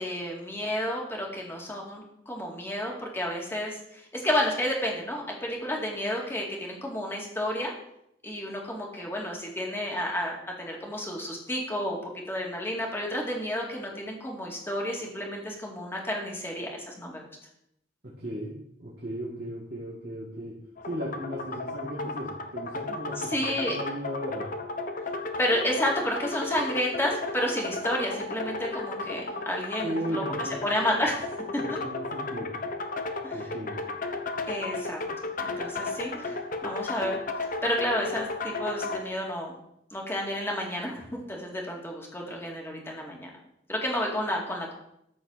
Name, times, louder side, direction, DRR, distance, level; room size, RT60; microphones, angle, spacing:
voice 1, 0.0-7.7 8.2-17.2 23.2-23.8 25.4-31.2 33.2-33.4 34.5-35.0 35.4-37.2 37.6-39.5 39.9-43.3 43.7-44.7, left 1 dB, 15° left, -1 dB, 2.3 m, -31 dB
voice 2, 18.0-24.6 29.8-30.6 31.6-32.7 33.3-33.8, equal, 60° right, -7 dB, 2.5 m, -36 dB
sound 1, 20.8-39.0, left 3 dB, 45° left, 0.9 m, -34 dB
13.5 x 4.6 x 6.4 m, 0.79 s
head